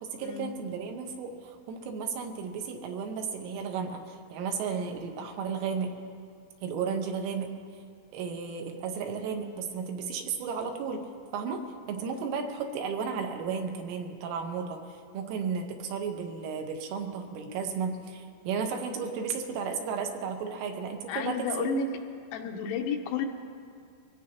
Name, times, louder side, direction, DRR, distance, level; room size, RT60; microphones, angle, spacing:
voice 1, 0.0-5.9 6.6-7.5 8.1-11.1 11.3-11.6 11.9-21.8, right 6 dB, 75° right, 3 dB, 3.4 m, -34 dB
voice 2, 21.1-21.9 22.3-23.3, left 5 dB, 85° left, 4 dB, 3.2 m, -31 dB
23.5 x 17.0 x 2.9 m, 2.3 s
omnidirectional pair, 6.0 m